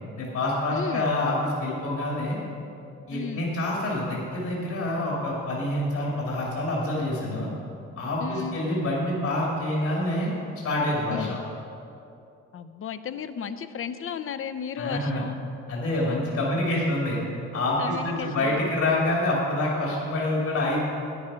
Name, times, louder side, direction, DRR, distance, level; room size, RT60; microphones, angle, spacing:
voice 1, 0.2-2.4 3.1-7.5 8.0-10.3 10.6-11.4 14.8-15.2 15.7-17.2 17.5-20.8, left 1 dB, 70° left, -4 dB, 2.7 m, -27 dB
voice 2, 0.7-1.1 3.1-3.4 8.2-8.6 11.1-11.4 12.5-15.4 17.8-18.8, left 7 dB, 45° left, 11 dB, 0.6 m, -34 dB
10.5 x 9.6 x 5.0 m, 2.6 s
cardioid pair, 90°, 30 cm